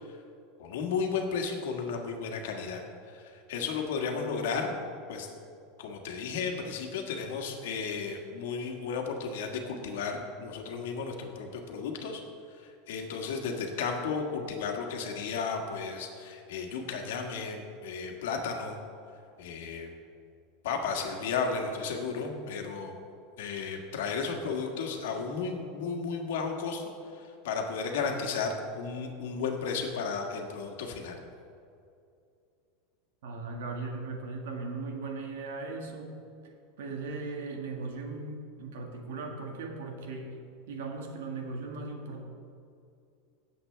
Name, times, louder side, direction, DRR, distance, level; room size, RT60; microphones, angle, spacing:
voice 1, 0.6-2.8 3.1-4.7 5.1-5.3 5.8-12.2 12.6-18.8 19.4-19.9 20.6-23.0 23.4-31.2, left 5 dB, 80° left, 2 dB, 1.6 m, -34 dB
voice 2, 33.2-36.2 36.8-40.3 40.7-42.2, right 3 dB, 90° right, 2 dB, 1.8 m, -38 dB
17.0 x 7.8 x 3.4 m, 2.5 s
supercardioid pair, 165°, 0 cm